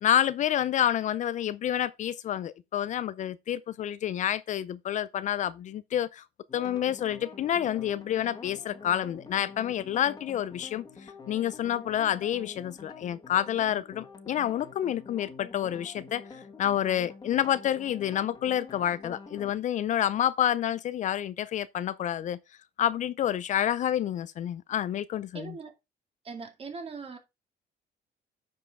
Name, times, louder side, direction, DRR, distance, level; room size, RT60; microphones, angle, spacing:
voice 1, 0.0-6.2 6.5-16.2 16.6-22.4 22.8-25.6, left 11 dB, 50° left, 0.5 m, -28 dB
sound 1, 6.5-19.5, left 4 dB, 25° left, 1.7 m, -47 dB
voice 2, 25.3-25.7 26.2-27.2, right 4 dB, 35° right, 2.3 m, -40 dB
9.3 x 5.5 x 3.6 m
cardioid pair, 130°, 17 cm